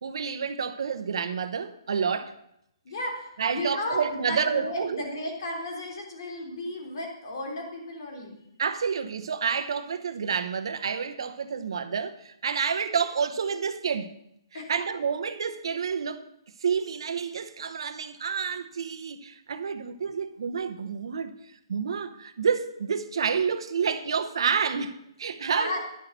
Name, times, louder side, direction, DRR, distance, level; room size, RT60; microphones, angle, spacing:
voice 1, 0.0-2.3 3.4-5.1 8.6-14.1 14.5-16.2 16.6-21.3 21.7-25.8, right 6 dB, 65° right, 0.9 m, -29 dB
voice 2, 2.8-8.4 14.5-14.7 25.5-25.8, left 1 dB, 55° left, 3.3 m, -34 dB
10.5 x 6.0 x 6.7 m
hypercardioid pair, 160°, 3 cm